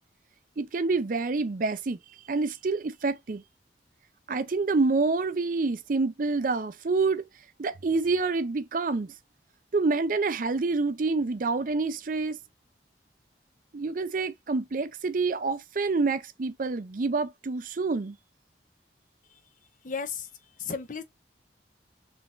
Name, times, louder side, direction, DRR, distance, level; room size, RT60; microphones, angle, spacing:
voice 1, 0.6-2.0 2.3-3.4 4.3-7.2 7.6-9.1 9.7-12.4 13.7-18.2, right 3 dB, 50° right, 0.5 m, -27 dB
voice 2, 19.8-21.0, left 5 dB, 50° left, 0.7 m, -35 dB
3.9 x 3.4 x 2.5 m
head